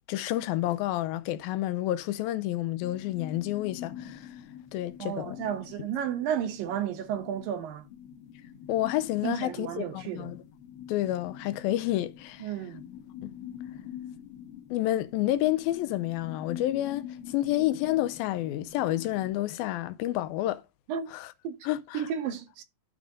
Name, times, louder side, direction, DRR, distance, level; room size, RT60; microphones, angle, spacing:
voice 1, 0.1-4.3 4.7-5.4 8.7-10.4 10.9-12.5 13.2-13.3 14.7-20.6 21.1-21.3 21.6-22.0, left 14 dB, 90° left, 2.5 m, -29 dB
sound 1, 2.8-19.3, left 9 dB, 45° left, 2.0 m, -45 dB
voice 2, 5.0-7.9 9.2-10.3 12.4-12.8 20.9-21.1 21.4-21.5 21.9-22.6, right 9 dB, 75° right, 2.8 m, -32 dB
12.5 x 5.0 x 3.8 m
omnidirectional pair, 4.2 m